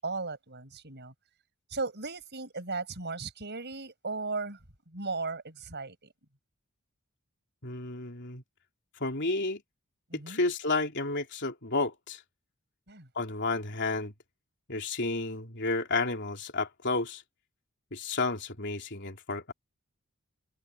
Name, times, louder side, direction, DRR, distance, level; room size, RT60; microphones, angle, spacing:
voice 1, 0.0-1.1 1.7-4.6 4.9-6.1 10.1-10.4 12.9-13.1, right 3 dB, 50° right, 7.6 m, -36 dB
voice 2, 7.6-8.4 9.0-9.6 10.1-12.2 13.2-14.1 14.7-17.2 17.9-19.5, left 3 dB, 55° left, 3.5 m, -31 dB
head